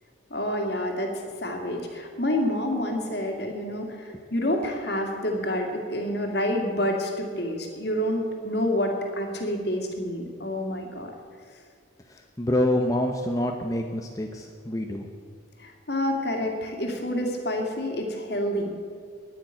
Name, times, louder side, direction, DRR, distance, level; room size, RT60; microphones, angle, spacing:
voice 1, 0.3-11.1 15.6-18.7, left 1 dB, 55° left, 3 dB, 2.2 m, -28 dB
voice 2, 12.1-15.1, left 1 dB, 15° left, 3 dB, 0.7 m, -27 dB
10.5 x 10.0 x 9.0 m, 2.3 s
head